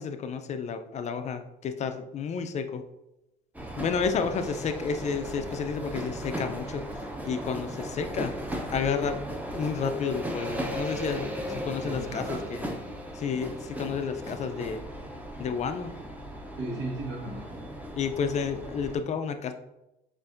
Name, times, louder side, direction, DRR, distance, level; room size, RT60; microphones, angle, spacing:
voice 1, 0.0-2.8 3.8-6.8 7.2-8.3 8.7-9.2 9.5-11.3 11.6-12.6 13.1-14.8 15.4-15.9 18.0-19.5, left 6 dB, 40° left, 8 dB, 0.4 m, -31 dB
sound 1, 3.5-19.0, equal, 10° right, 0.6 m, -37 dB
voice 2, 11.2-11.6 11.8-12.5 16.6-17.6, right 2 dB, 80° right, -1 dB, 1.3 m, -36 dB
6.7 x 2.5 x 2.5 m, 0.92 s
cardioid pair, 110°, 17 cm